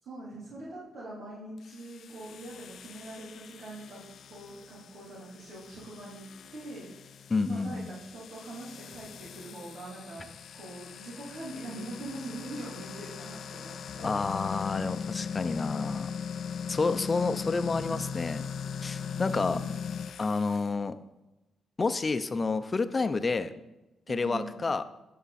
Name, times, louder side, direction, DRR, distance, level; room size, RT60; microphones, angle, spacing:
voice 1, 0.0-4.0 4.3-6.9 7.5-14.2 17.8-18.1 19.4-19.7 23.2-23.6 24.1-24.7, right 2 dB, 75° right, -7 dB, 3.7 m, -43 dB
sound 1, 1.6-20.7, left 7 dB, 65° left, 0.5 m, -40 dB
voice 2, 7.3-7.9 14.0-16.1 16.7-18.4 18.8-19.6 20.2-21.0 21.8-23.5 24.1-24.8, left 4 dB, 30° left, 11 dB, 0.7 m, -29 dB
18.5 x 6.7 x 4.3 m, 1.0 s
cardioid pair, 90°, 0 cm